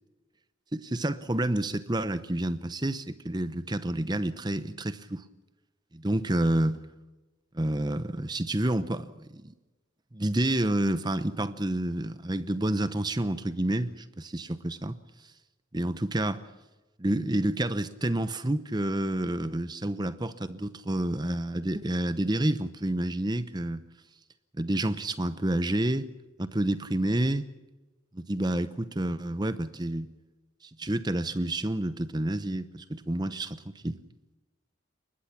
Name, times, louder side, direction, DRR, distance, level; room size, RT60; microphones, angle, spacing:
voice 1, 0.7-5.2 5.9-6.8 7.5-9.5 10.1-15.0 15.7-16.4 17.0-23.8 24.6-26.1 26.4-27.5 28.1-30.1 30.8-34.0, right 1 dB, 20° right, 0.8 m, -29 dB
23.0 x 20.0 x 6.0 m
head